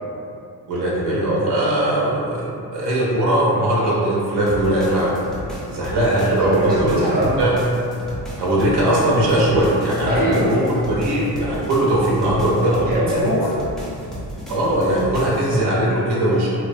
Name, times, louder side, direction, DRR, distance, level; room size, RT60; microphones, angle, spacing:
voice 1, 0.7-5.1 5.7-7.1 7.4-7.6 8.4-10.6 10.9-12.8 14.5-16.5, right 1 dB, 75° right, -5 dB, 0.7 m, -19 dB
sound 1, 4.5-15.5, equal, ahead, 0.4 m, -34 dB
voice 2, 6.2-7.4 10.0-10.5 12.7-13.5, right 1 dB, 20° right, -8 dB, 0.8 m, -22 dB
2.9 x 2.0 x 2.6 m, 2.6 s
cardioid pair, 105°, 41 cm